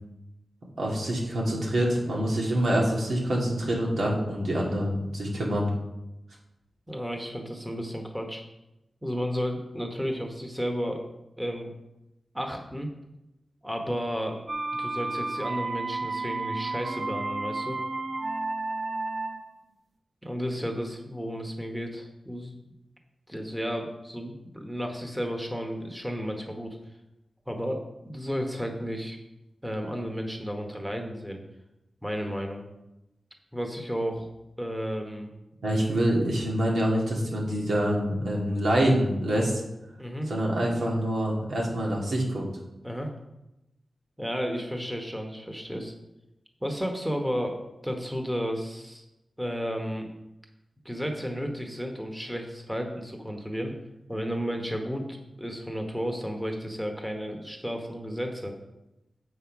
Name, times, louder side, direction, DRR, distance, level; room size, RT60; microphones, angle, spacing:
voice 1, 0.8-5.7 35.6-39.6 40.3-42.5, right 1 dB, 90° right, -2 dB, 2.4 m, -26 dB
voice 2, 6.9-8.5 9.0-11.1 11.4-11.7 12.3-12.9 13.6-14.4 14.8-17.8 20.2-22.6 23.3-26.8 27.5-29.2 29.6-31.4 32.0-32.6 33.5-34.3 34.6-35.3 40.0-40.3 42.8-43.1 44.2-45.9 46.6-47.6 47.8-49.0 49.4-50.1 50.8-53.7 54.1-58.5, equal, 5° right, 3 dB, 1.1 m, -32 dB
sound 1, 14.5-19.6, right 2 dB, 55° right, 0.6 m, -32 dB
7.7 x 5.7 x 5.9 m, 0.91 s
wide cardioid pair, 125°, 0 cm